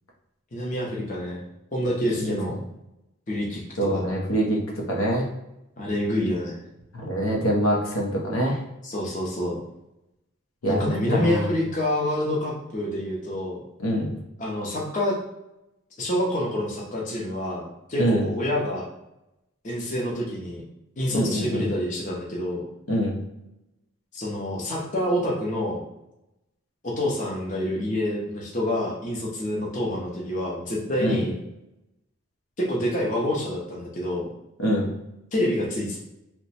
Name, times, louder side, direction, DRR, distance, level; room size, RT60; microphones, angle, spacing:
voice 1, 0.5-1.4 1.7-2.5 3.3-4.1 5.8-6.6 8.8-9.6 10.6-13.6 14.4-15.2 16.0-18.8 19.6-20.6 21.0-22.6 24.1-25.8 26.8-31.4 32.6-34.3 35.3-36.0, left 1 dB, 35° left, -3 dB, 0.7 m, -27 dB
voice 2, 2.2-2.6 3.8-5.3 6.9-8.6 10.6-10.8 11.1-11.5 13.8-14.1 18.0-18.3 21.1-21.7 22.9-23.2 31.0-31.2 34.6-34.9, equal, 90° left, -1 dB, 0.8 m, -24 dB
2.9 x 2.2 x 4.1 m, 0.90 s
head